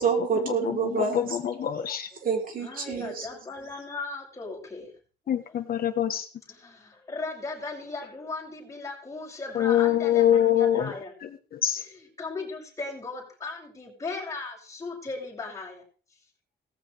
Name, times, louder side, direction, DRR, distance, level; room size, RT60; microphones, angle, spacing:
voice 1, 0.0-1.4 2.2-3.3, right 5 dB, 55° right, 2 dB, 3.8 m, -27 dB
voice 2, 1.1-2.1 5.3-6.2 9.5-10.9 11.6-11.8, left 11 dB, 55° left, 7 dB, 1.3 m, -24 dB
voice 3, 1.7-2.2 2.6-4.9 5.4-5.6 6.5-11.1 11.8-15.8, left 3 dB, 20° left, -4 dB, 6.7 m, -37 dB
17.5 x 15.5 x 3.5 m, 0.39 s
wide cardioid pair, 160°, 18 cm